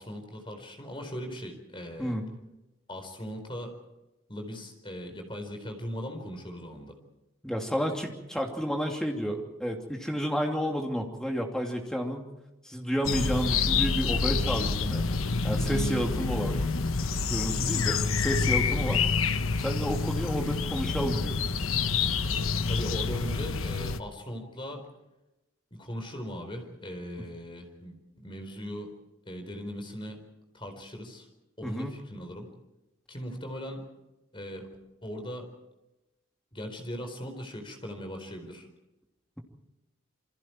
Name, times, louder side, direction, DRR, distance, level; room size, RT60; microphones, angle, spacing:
voice 1, 0.0-2.1 2.9-3.8 4.3-7.0 17.7-18.0 22.7-24.8 25.7-28.9 29.3-30.2 30.5-31.3 31.6-32.5 33.1-33.8 34.3-34.7 35.0-35.5 36.5-38.7, equal, 25° left, 4 dB, 4.4 m, -39 dB
voice 2, 7.4-12.3 12.6-15.0 15.4-16.5 17.3-19.0 19.6-21.4 31.6-32.0, equal, 5° left, 1 dB, 2.9 m, -31 dB
sound 1, 13.0-24.0, left 4 dB, 85° left, 1.1 m, -27 dB
28.5 x 25.5 x 4.6 m, 0.99 s
head